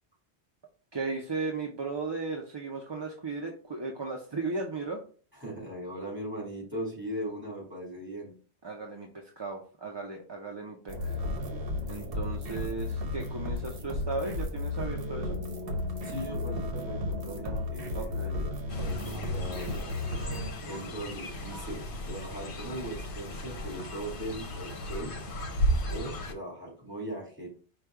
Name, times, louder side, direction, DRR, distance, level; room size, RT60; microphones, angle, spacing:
voice 1, 0.9-5.0 8.6-11.2 11.9-15.4 17.3-18.3 20.6-20.7, right 3 dB, 35° right, 1 dB, 0.5 m, -36 dB
voice 2, 5.4-8.3 16.0-19.8 20.1-25.2 25.9-27.5, right 1 dB, 10° right, -4 dB, 2.6 m, -39 dB
sound 1, 10.9-20.5, left 2 dB, 60° right, 1.0 m, -34 dB
Fowl, 18.7-26.3, equal, 60° left, 0.9 m, -35 dB
4.9 x 2.3 x 4.5 m, 0.40 s
omnidirectional pair, 1.1 m